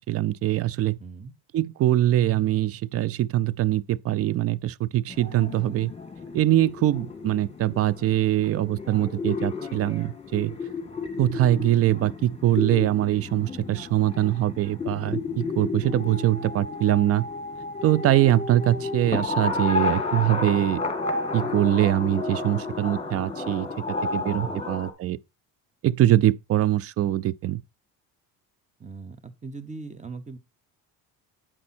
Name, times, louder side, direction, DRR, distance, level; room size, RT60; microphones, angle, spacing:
voice 1, 0.0-1.0 1.5-5.9 6.3-10.5 11.2-17.2 17.8-20.8 21.3-23.7 24.1-25.2 25.8-27.6, right 13 dB, 40° right, 0.4 m, -23 dB
voice 2, 1.0-1.3 24.3-24.6 28.8-30.4, right 4 dB, 20° right, 1.0 m, -40 dB
sound 1, 5.1-24.9, left 3 dB, 15° left, 1.8 m, -32 dB
8.8 x 5.2 x 4.2 m
cardioid pair, 105°, 40 cm